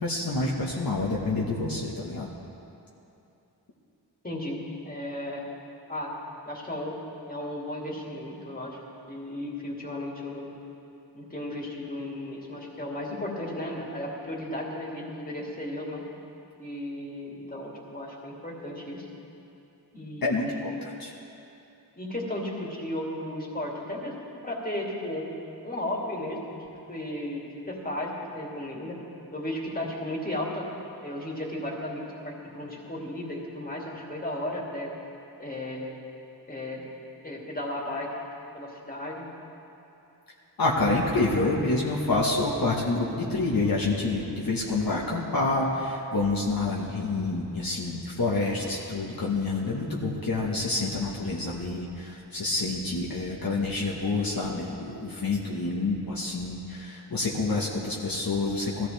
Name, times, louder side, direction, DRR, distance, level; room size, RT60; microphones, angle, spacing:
voice 1, 0.0-2.3 20.2-20.4 20.8-21.1 40.6-58.9, left 3 dB, 60° left, -4 dB, 1.4 m, -28 dB
voice 2, 4.2-5.4 5.9-6.1 6.5-6.9 7.3-8.8 9.1-10.5 11.1-16.0 16.6-19.1 19.9-20.8 22.0-24.1 24.4-25.2 25.6-29.0 29.3-30.7 31.0-34.9 35.4-35.9 36.5-36.9 37.2-38.1 38.5-39.3, left 1 dB, 20° left, -3 dB, 2.5 m, -34 dB
18.5 x 14.0 x 3.4 m, 2.9 s
wide cardioid pair, 75°, 40 cm